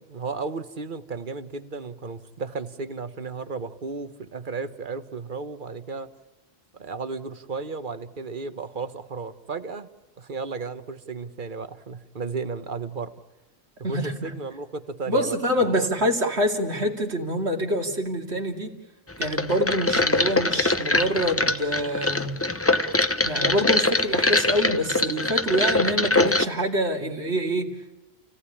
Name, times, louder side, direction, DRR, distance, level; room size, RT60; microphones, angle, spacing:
voice 1, 0.0-6.1 6.7-9.9 10.2-13.1 13.8-15.4 15.6-15.9, right 4 dB, 50° right, 11 dB, 1.4 m, -34 dB
voice 2, 13.8-14.3 15.1-18.7 19.2-22.4 23.2-27.7, equal, 75° right, 2 dB, 3.0 m, -26 dB
sound 1, 19.2-26.4, left 2 dB, 15° left, 0.8 m, -23 dB
29.5 x 17.0 x 9.9 m, 1.0 s
omnidirectional pair, 1.1 m